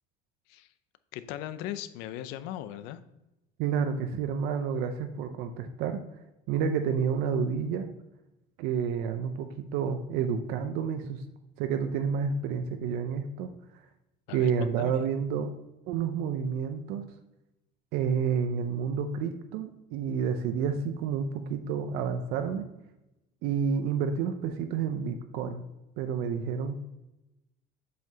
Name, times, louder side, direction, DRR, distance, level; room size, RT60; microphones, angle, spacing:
voice 1, 1.1-3.0 14.3-15.0, left 12 dB, 70° left, 13 dB, 0.5 m, -38 dB
voice 2, 3.6-6.0 6.5-7.9 8.6-11.2 11.6-13.8 14.3-15.5 15.9-17.0 17.9-22.6 23.4-25.6 26.0-26.8, right 6 dB, 65° right, 8 dB, 0.5 m, -30 dB
7.6 x 5.7 x 2.8 m, 0.95 s
cardioid pair, 175°, 18 cm